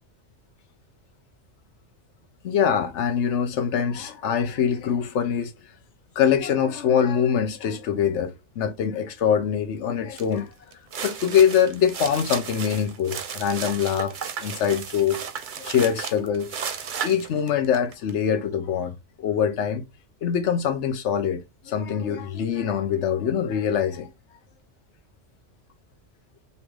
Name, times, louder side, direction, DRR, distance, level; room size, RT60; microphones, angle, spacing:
voice 1, 2.4-5.5 6.2-10.5 11.0-14.1 14.4-15.2 15.6-16.7 17.0-19.8 20.2-24.1, left 8 dB, 70° left, 1.1 m, -24 dB
sound 1, 10.2-10.3 10.7-18.1, right 7 dB, 50° right, 0.7 m, -34 dB
3.3 x 2.9 x 4.6 m
omnidirectional pair, 1.3 m